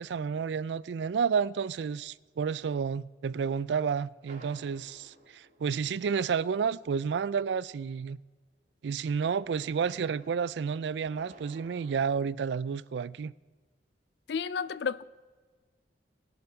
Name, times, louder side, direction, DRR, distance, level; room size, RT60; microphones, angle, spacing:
voice 1, 0.0-8.2 8.8-13.3, right 6 dB, 75° right, 0.4 m, -31 dB
sound 1, 4.3-6.4 9.3-12.1, right 1 dB, 45° right, 1.7 m, -54 dB
voice 2, 14.3-15.0, left 6 dB, 70° left, 0.4 m, -31 dB
21.5 x 7.1 x 4.4 m
head